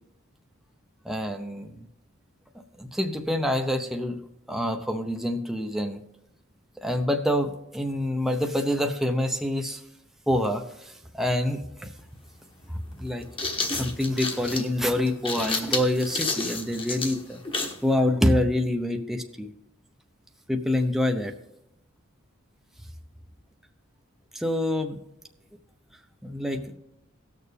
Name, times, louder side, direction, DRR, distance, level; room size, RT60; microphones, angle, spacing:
voice 1, 1.0-1.9 2.8-4.2 4.5-6.0 6.8-9.8 10.3-11.9 12.7-13.3 13.6-17.4 17.8-19.5 20.5-21.3 24.3-25.0 26.2-26.7, left 1 dB, ahead, 4 dB, 0.7 m, -26 dB
sound 1, 12.0-12.1 13.1-17.8, left 3 dB, 25° left, 1.2 m, -30 dB
18.0 x 6.6 x 3.4 m, 0.85 s
head